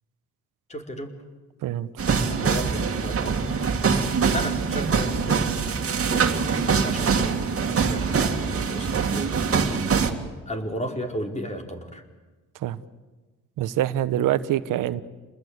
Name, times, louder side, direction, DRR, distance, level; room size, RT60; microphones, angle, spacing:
voice 1, 0.7-1.1 2.3-5.7 6.1-7.5 7.8-9.9 10.5-12.0, equal, 20° left, 3 dB, 4.4 m, -35 dB
sound 1, 2.0-10.1, right 5 dB, 45° right, 2.4 m, -24 dB
voice 2, 13.6-15.0, right 12 dB, 80° right, 14 dB, 1.1 m, -25 dB
29.5 x 20.5 x 8.1 m, 1.2 s
cardioid pair, 75°, 32 cm